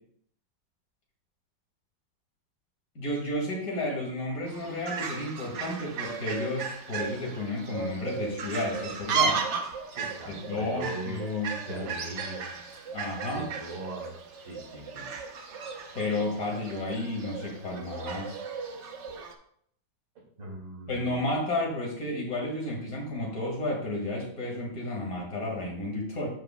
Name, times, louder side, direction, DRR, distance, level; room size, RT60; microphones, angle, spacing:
voice 1, 3.0-9.4 10.3-11.9 12.9-13.4 15.9-18.4 20.9-26.3, left 2 dB, 50° left, -1 dB, 2.4 m, -32 dB
Fowl, 4.5-19.3, right 5 dB, 55° right, 0.8 m, -35 dB
voice 2, 9.9-11.2 11.6-12.5 13.3-15.1 20.2-21.1, right 2 dB, 80° right, -2 dB, 2.9 m, -40 dB
13.5 x 4.9 x 2.2 m, 0.66 s
omnidirectional pair, 2.0 m